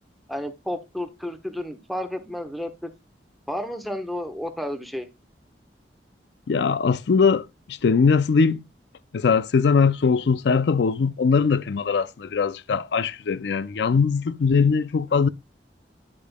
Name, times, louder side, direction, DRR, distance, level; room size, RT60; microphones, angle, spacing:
voice 1, 0.3-2.9 3.5-5.1, left 1 dB, ahead, 1.0 m, -31 dB
voice 2, 6.5-8.6 9.1-15.3, left 5 dB, 75° left, 0.4 m, -21 dB
9.9 x 8.4 x 2.2 m
head